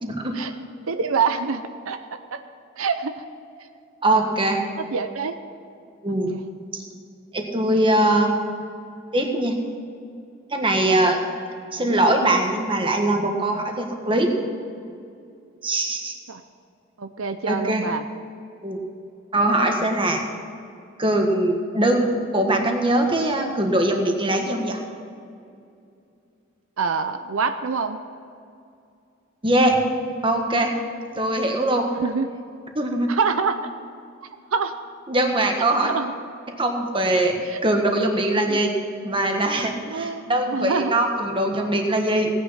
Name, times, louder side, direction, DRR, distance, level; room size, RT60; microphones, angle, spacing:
voice 1, 0.0-0.4 4.0-4.6 6.0-6.3 6.7-6.8 7.3-8.3 9.1-9.6 10.5-11.2 11.7-14.3 15.6-16.2 17.5-17.9 18.6-18.8 19.3-20.2 21.0-24.8 29.4-29.8 30.2-30.7 31.2-31.9 32.8-33.2 35.1-35.9 36.6-37.3 37.6-38.7 39.0-42.3, right 1 dB, 25° right, 3 dB, 1.6 m, -21 dB
voice 2, 0.9-2.0 2.8-3.2 4.9-5.3 6.3-6.4 16.3-16.4 17.0-18.0 26.8-28.0 32.0-32.3 33.1-33.6 34.5-34.7 35.8-36.1 37.5-37.6 38.5-38.6 39.9-40.9, right 5 dB, 75° right, 8 dB, 0.7 m, -25 dB
17.5 x 9.9 x 5.7 m, 2.5 s
head